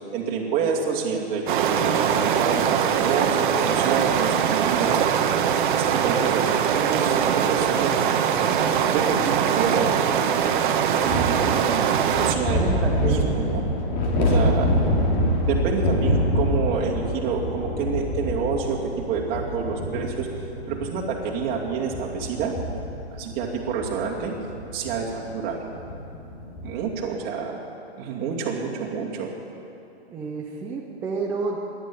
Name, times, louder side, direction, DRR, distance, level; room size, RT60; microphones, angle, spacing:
voice 1, 0.1-5.0 5.7-8.0 8.9-9.9 10.9-13.6 14.2-14.7 15.5-20.3 20.7-22.6 23.1-24.3 24.7-25.6 26.6-27.6 28.0-29.3, right 6 dB, 30° right, -2 dB, 2.5 m, -28 dB
sound 1, 1.5-12.4, right 8 dB, 50° right, 1.1 m, -22 dB
sound 2, 11.0-26.9, equal, 40° left, 2.5 m, -26 dB
voice 2, 12.3-13.3 30.1-31.6, right 4 dB, 5° right, -2 dB, 0.3 m, -30 dB
12.0 x 11.0 x 9.8 m, 2.8 s
hypercardioid pair, 140°, 32 cm